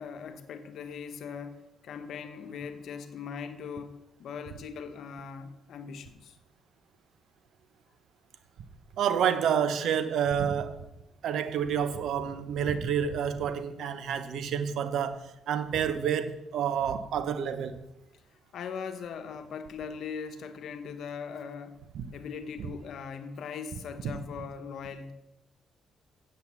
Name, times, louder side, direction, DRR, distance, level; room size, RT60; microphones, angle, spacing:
voice 1, 0.0-6.4 18.5-21.8 22.1-25.1, left 6 dB, 70° left, 1.1 m, -40 dB
voice 2, 9.0-10.8 11.2-17.8 21.9-22.1, right 8 dB, 70° right, 0.9 m, -29 dB
8.3 x 7.8 x 7.2 m
cardioid pair, 90°, 0 cm